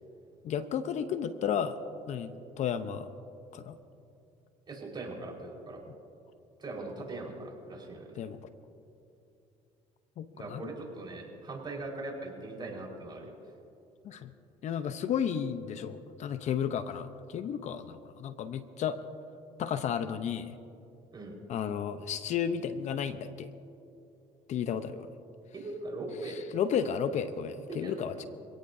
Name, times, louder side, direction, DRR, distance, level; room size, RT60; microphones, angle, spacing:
voice 1, 0.4-1.8 2.1-3.1 3.5-3.8 8.2-8.4 10.2-10.7 14.0-14.3 14.6-19.0 19.6-20.5 21.5-23.5 24.5-25.1 26.2-28.3, left 8 dB, 60° left, 11 dB, 0.8 m, -33 dB
voice 2, 4.7-5.8 6.6-8.2 10.3-13.3 21.1-21.3 25.5-26.4 27.7-28.3, right 2 dB, 35° right, -1 dB, 4.7 m, -40 dB
27.0 x 17.0 x 2.7 m, 2.7 s
supercardioid pair, 90°, 14 cm